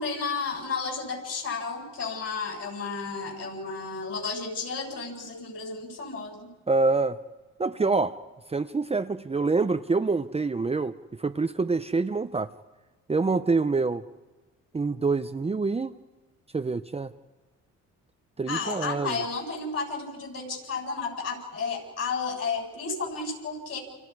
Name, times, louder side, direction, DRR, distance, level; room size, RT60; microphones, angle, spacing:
voice 1, 0.0-6.5 18.5-23.8, left 4 dB, 55° left, 1 dB, 7.5 m, -32 dB
voice 2, 6.7-7.2 7.6-8.2 8.5-12.5 13.1-14.0 14.7-15.9 16.5-17.1 18.4-19.2, right 3 dB, 20° right, 8 dB, 0.8 m, -26 dB
29.5 x 27.5 x 4.9 m, 1.2 s
cardioid pair, 90°, 30 cm